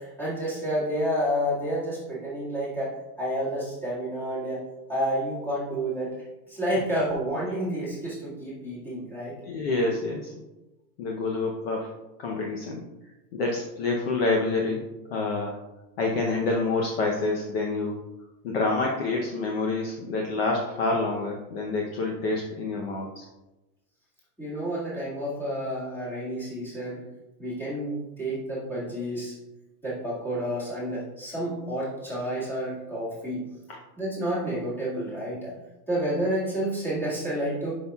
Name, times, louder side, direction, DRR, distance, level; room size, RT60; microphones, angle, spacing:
voice 1, 0.0-4.6 4.9-6.1 6.5-9.4 24.4-27.0 27.4-29.5 29.8-33.4 34.0-35.6 35.9-37.7, equal, 5° left, -9 dB, 1.8 m, -30 dB
voice 2, 9.4-10.3 11.0-11.9 12.2-12.8 13.3-14.8 15.1-15.6 16.0-18.0 18.4-23.3, left 3 dB, 35° left, -1 dB, 0.7 m, -27 dB
10.0 x 5.6 x 2.3 m, 1.0 s
supercardioid pair, 175°, 50 cm